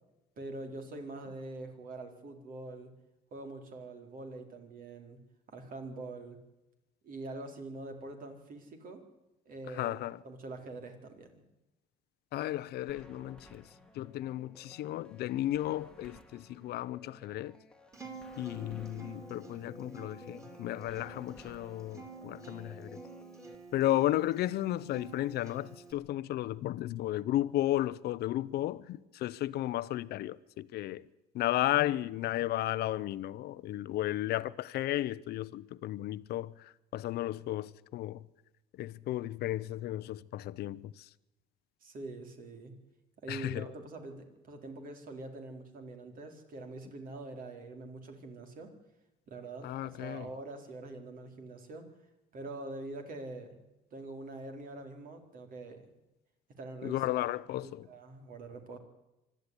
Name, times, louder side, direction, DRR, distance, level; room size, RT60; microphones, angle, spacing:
voice 1, 0.4-2.9 3.3-5.2 5.5-6.4 7.0-9.0 9.5-11.5 41.8-42.7 43.2-48.7 49.3-51.9 52.3-53.6 53.9-56.0 56.6-57.0 57.6-58.8, right 2 dB, 55° right, 4.3 m, -44 dB
voice 2, 9.7-10.2 12.3-13.7 13.9-17.6 18.4-23.0 23.7-31.1 31.3-38.2 38.8-41.1 43.3-43.7 49.6-50.3 56.8-57.9, left 14 dB, 75° left, 0.8 m, -34 dB
sound 1, 12.9-23.6, left 2 dB, 5° left, 1.8 m, -56 dB
Acoustic guitar, 17.9-25.9, right 4 dB, 20° right, 4.5 m, -50 dB
25.0 x 12.5 x 9.9 m
cardioid pair, 110°, 17 cm